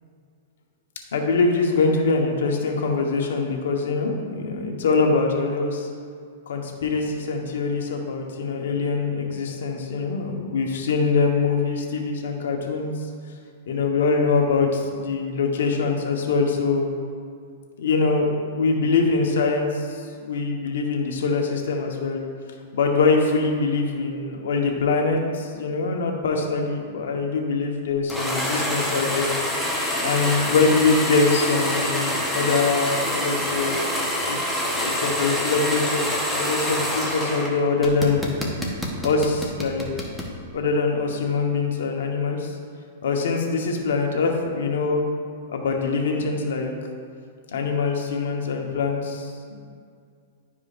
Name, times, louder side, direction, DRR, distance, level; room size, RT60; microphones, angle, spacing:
voice 1, 1.1-5.9 6.5-12.9 13.7-16.9 17.8-19.9 20.1-22.2 22.7-29.3 30.0-33.8 34.3-38.2 39.0-39.9 40.5-42.5 43.0-45.0 45.5-46.7 47.5-49.3, left 4 dB, 80° left, 2 dB, 1.1 m, -23 dB
sound 1, 28.1-37.5 37.8-40.3, equal, ahead, 0.9 m, -26 dB
11.0 x 4.9 x 2.5 m, 2.2 s
hypercardioid pair, 145°, 0 cm